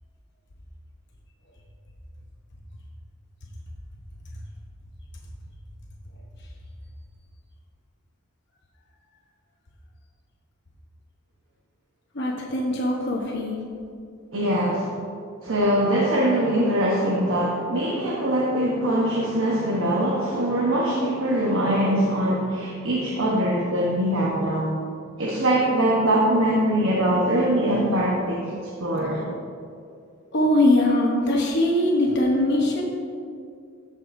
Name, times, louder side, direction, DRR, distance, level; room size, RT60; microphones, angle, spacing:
voice 1, 12.1-13.6 30.3-32.8, left 1 dB, 50° left, -2 dB, 0.9 m, -21 dB
voice 2, 14.3-14.9 15.4-24.7 25.2-28.4 28.8-29.2, right 1 dB, 65° right, -4 dB, 1.0 m, -22 dB
14.0 x 5.4 x 2.6 m, 2.3 s
head